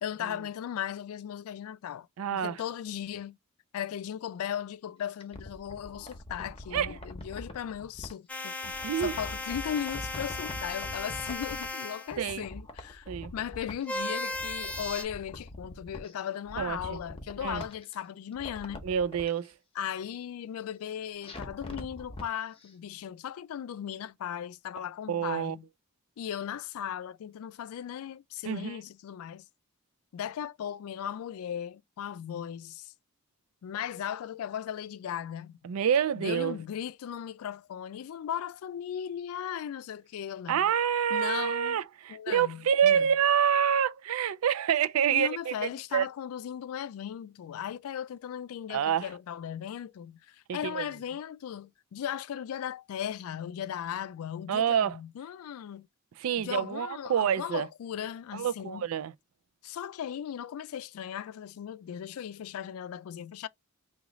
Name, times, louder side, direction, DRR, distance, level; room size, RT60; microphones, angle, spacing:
voice 1, 0.0-3.4 3.7-18.8 19.8-25.7 26.2-29.5 30.1-32.9 33.6-35.6 36.1-40.7 41.1-41.8 42.1-43.1 45.1-55.9 56.4-58.9 59.6-63.5, left 9 dB, 85° left, 0.3 m, -37 dB
voice 2, 2.2-2.6 6.7-7.0 8.8-9.1 12.2-12.4 13.1-13.3 16.6-17.0 17.4-17.6 18.8-19.5 25.1-25.6 28.4-28.8 35.6-36.6 40.5-46.1 48.7-49.1 50.5-50.8 54.5-55.0 56.2-57.7 58.3-59.1, right 8 dB, 80° right, 0.4 m, -27 dB
sound 1, 5.0-8.1 8.6-11.8 12.1-13.9 14.2-16.1 16.5-18.0 18.3-19.3 21.2-22.3 22.6-22.7, left 1 dB, 25° left, 0.7 m, -43 dB
sound 2, 8.3-12.1 13.9-15.0, left 2 dB, 5° left, 0.3 m, -36 dB
3.0 x 2.3 x 3.7 m
head